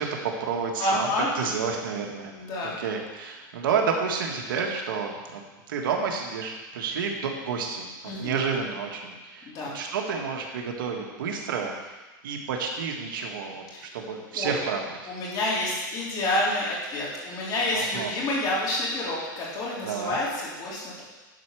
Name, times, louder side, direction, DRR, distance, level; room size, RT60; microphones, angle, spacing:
voice 1, 0.0-2.3 2.6-5.4 5.7-11.7 12.2-13.6 13.9-14.8 17.7-18.1 19.8-20.2, right 5 dB, 85° right, 1 dB, 1.7 m, -30 dB
voice 2, 0.8-1.3 2.3-2.7 8.1-8.4 9.5-9.7 13.7-14.0 14.3-14.6 15.1-21.0, left 1 dB, 35° left, -5 dB, 3.5 m, -28 dB
11.0 x 4.6 x 6.2 m, 1.2 s
supercardioid pair, 140°, 11 cm